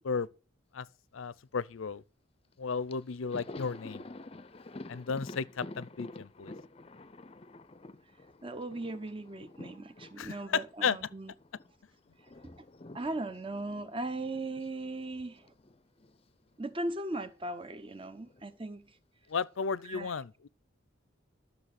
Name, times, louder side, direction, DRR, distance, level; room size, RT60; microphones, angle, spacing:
voice 1, 1.1-2.0 2.6-4.1 4.9-6.5 10.2-11.0 19.3-20.5, left 5 dB, 90° left, 0.6 m, -34 dB
Thunder, 2.5-2.6 2.9-11.7 12.0-16.3 16.5-16.7 17.9-18.6, left 2 dB, 30° left, 0.6 m, -49 dB
voice 2, 8.4-11.3 12.4-12.7 12.9-15.5 16.6-19.0 19.9-20.1, right 2 dB, 25° right, 0.9 m, -38 dB
12.5 x 6.7 x 6.5 m
head